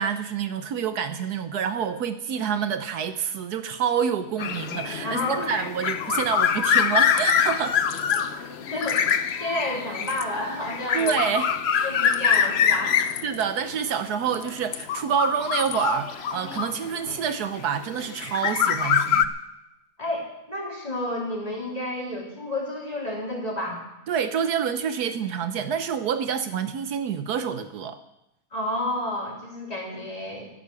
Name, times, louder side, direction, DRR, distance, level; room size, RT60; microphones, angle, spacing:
voice 1, 0.0-7.8 10.9-11.9 13.2-19.3 24.1-28.0, right 7 dB, 75° right, 10 dB, 1.3 m, -27 dB
sound 1, 4.4-17.3 18.0-19.2, left 8 dB, 55° left, 0.8 m, -25 dB
voice 2, 5.0-5.5 8.7-9.0 9.4-11.3 11.8-13.2 18.6-18.7 20.0-23.8 28.5-30.5, left 1 dB, 25° left, -2 dB, 3.6 m, -30 dB
sound 2, 7.0-7.4 7.9-8.2 8.8-9.3 10.0-10.3 11.0-11.3 12.0-12.4 13.0-13.5 14.2-14.9 15.5-15.9, left 11 dB, 80° left, 1.4 m, -38 dB
13.0 x 11.5 x 7.0 m, 0.90 s
omnidirectional pair, 1.7 m